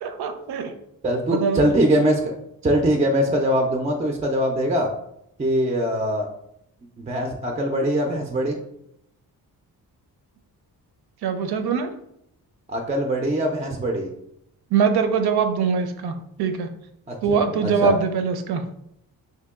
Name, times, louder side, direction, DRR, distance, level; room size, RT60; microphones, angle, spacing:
voice 1, 0.0-0.7 1.3-1.7 11.2-11.9 14.7-16.7 17.2-18.6, right 6 dB, 90° right, 7 dB, 0.5 m, -22 dB
voice 2, 1.0-2.3 2.6-4.9 5.4-6.3 7.0-8.6 12.7-14.1 17.1-17.9, equal, 20° right, 2 dB, 0.3 m, -22 dB
2.9 x 2.8 x 3.5 m, 0.77 s
wide cardioid pair, 135°, 37 cm